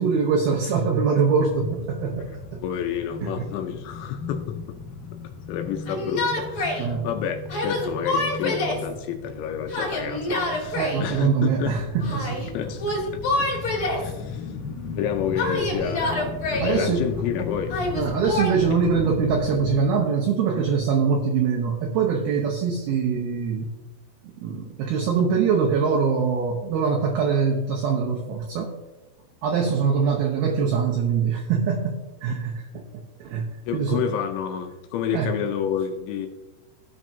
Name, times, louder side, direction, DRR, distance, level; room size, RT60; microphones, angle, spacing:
voice 1, 0.0-2.3 2.5-2.6 3.2-3.3 6.8-7.1 10.8-12.5 16.6-17.1 18.0-23.7 24.2-28.7 29.4-34.1 35.1-35.4, right 6 dB, 90° right, 0 dB, 2.1 m, -23 dB
sound 1, 1.2-19.9, left 5 dB, 65° left, 2.1 m, -36 dB
voice 2, 2.6-4.8 5.5-11.7 12.5-12.8 14.0-14.5 15.0-17.8 33.7-36.3, left 8 dB, 80° left, 5 dB, 2.8 m, -29 dB
Yell, 5.9-6.8 7.5-8.9 9.7-11.0 12.0-12.5 12.8-14.1 15.3-16.8 17.7-18.6, left 1 dB, 35° left, 2.7 m, -27 dB
16.5 x 6.2 x 2.7 m, 1.1 s
omnidirectional pair, 5.6 m